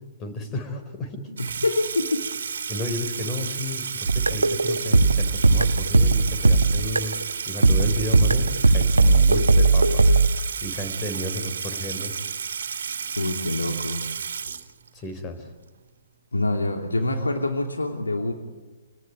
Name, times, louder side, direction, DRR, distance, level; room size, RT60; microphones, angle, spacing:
voice 1, 0.2-1.2 2.7-7.2 7.4-10.0 10.6-12.1 14.9-15.5, left 1 dB, 20° left, 8 dB, 4.3 m, -32 dB
voice 2, 1.3-2.3 13.2-14.0 16.3-18.3, left 2 dB, 80° left, 3 dB, 2.8 m, -26 dB
Water tap faucet / Sink (filling or washing), 1.4-15.1, right 6 dB, 60° right, 2.5 m, -32 dB
sound 1, 4.1-7.2 7.6-10.3, right 3 dB, 80° right, 1.2 m, -18 dB
29.0 x 19.0 x 9.4 m, 1.2 s
figure-of-eight pair, 125°, 0 cm